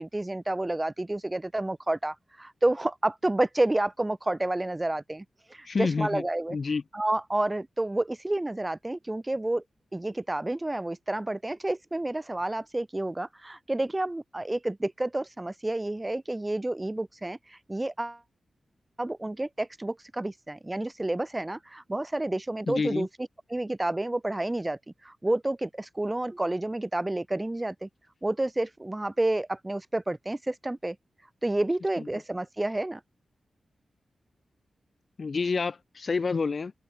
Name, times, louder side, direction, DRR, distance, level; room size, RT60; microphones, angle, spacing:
voice 1, 0.0-5.2 5.5-6.6 6.9-9.6 9.9-18.2 19.0-23.1 23.5-27.9 28.2-31.0 31.4-33.0, right 1 dB, 20° right, 3.2 m, -30 dB
voice 2, 5.7-6.2 6.5-6.8 22.7-23.1 35.2-36.7, left 4 dB, 50° left, 2.4 m, -28 dB
cardioid pair, 75°, 0 cm